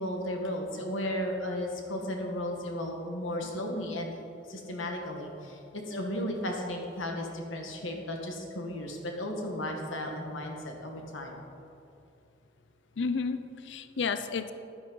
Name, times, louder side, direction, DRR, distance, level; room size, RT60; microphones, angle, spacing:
voice 1, 0.0-4.2 4.5-11.4, left 1 dB, 85° left, 2 dB, 1.6 m, -35 dB
voice 2, 13.0-14.5, left 5 dB, 65° left, 10 dB, 0.5 m, -31 dB
11.5 x 9.3 x 4.0 m, 2.7 s
head